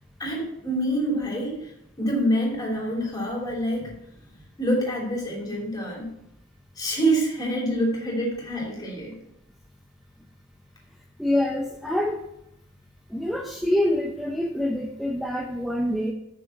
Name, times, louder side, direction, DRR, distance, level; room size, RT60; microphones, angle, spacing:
voice 1, 0.2-1.7 2.0-3.9 4.6-6.1 6.8-9.2, right 1 dB, 15° left, -3 dB, 2.8 m, -26 dB
voice 2, 11.2-12.3 13.1-16.1, left 1 dB, ahead, 0 dB, 0.6 m, -26 dB
7.0 x 6.1 x 7.6 m, 0.81 s
head